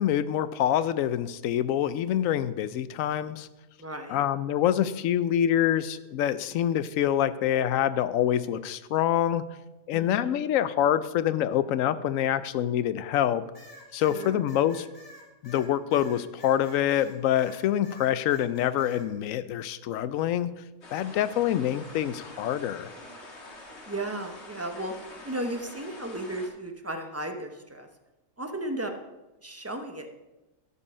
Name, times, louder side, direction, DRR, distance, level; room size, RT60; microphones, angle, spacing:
voice 1, 0.0-3.5 4.1-9.4 9.9-13.4 13.9-14.9 15.4-20.5 20.9-22.9, left 11 dB, 85° left, 14 dB, 1.0 m, -26 dB
voice 2, 3.8-4.2 9.9-10.4 13.9-14.4 23.9-27.9 28.4-28.9 29.4-30.2, right 1 dB, 15° right, 5 dB, 0.7 m, -35 dB
sound 1, 13.5-17.6 17.8-19.0, left 1 dB, 35° left, 3.0 m, -49 dB
sound 2, 20.8-26.5, left 1 dB, 55° left, 1.9 m, -46 dB
13.0 x 5.6 x 5.5 m, 1.0 s
omnidirectional pair, 1.4 m